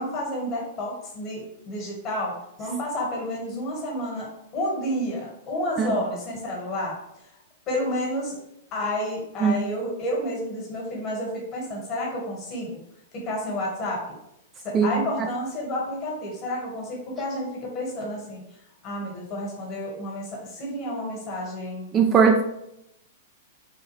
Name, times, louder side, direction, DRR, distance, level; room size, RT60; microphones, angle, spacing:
voice 1, 0.0-7.0 7.7-8.4 8.7-12.8 13.1-14.2 14.6-18.4 18.8-21.9, left 1 dB, 35° left, -3 dB, 1.3 m, -30 dB
voice 2, 14.7-15.1 21.9-22.4, right 6 dB, 25° right, 4 dB, 0.3 m, -19 dB
3.6 x 2.2 x 3.2 m, 0.82 s
hypercardioid pair, 130°, 0 cm